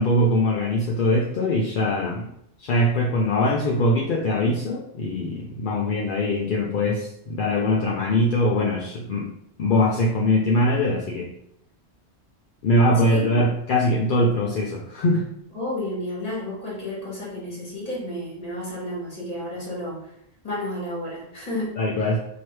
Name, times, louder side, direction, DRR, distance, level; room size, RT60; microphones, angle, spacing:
voice 1, 0.0-2.3 2.6-9.3 9.6-11.3 12.6-15.3 21.8-22.2, left 1 dB, 60° left, -2 dB, 0.6 m, -22 dB
voice 2, 12.9-13.3 15.5-20.1 20.4-21.7, left 1 dB, 35° left, -5 dB, 1.5 m, -31 dB
4.5 x 2.8 x 3.1 m, 0.75 s
omnidirectional pair, 1.2 m